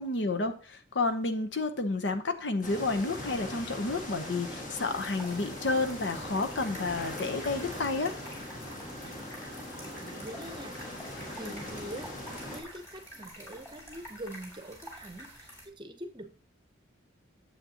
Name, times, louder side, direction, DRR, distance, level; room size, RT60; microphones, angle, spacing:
voice 1, 0.0-8.2, left 3 dB, 65° left, 8 dB, 0.8 m, -30 dB
sound 1, 2.6-12.6, left 1 dB, 40° left, 1.8 m, -40 dB
sound 2, 4.9-15.6, equal, 15° left, 2.6 m, -48 dB
voice 2, 10.0-10.8 11.3-16.4, right 1 dB, 25° right, 8 dB, 0.7 m, -44 dB
9.6 x 7.4 x 2.8 m, 0.37 s
head